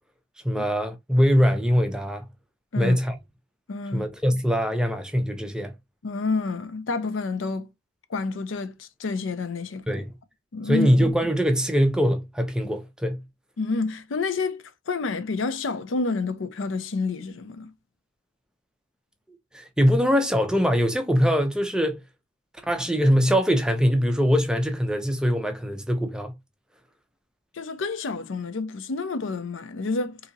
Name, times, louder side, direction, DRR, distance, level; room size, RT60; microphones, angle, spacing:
voice 1, 0.4-2.2 2.8-3.2 3.9-5.7 9.9-10.1 10.6-13.2 19.5-22.0 22.7-26.3, equal, 5° right, 0.5 m, -22 dB
voice 2, 3.7-4.1 6.0-7.7 8.1-9.8 10.5-10.9 13.6-17.7 27.5-30.2, left 4 dB, 80° left, 0.5 m, -29 dB
3.9 x 2.7 x 2.7 m
head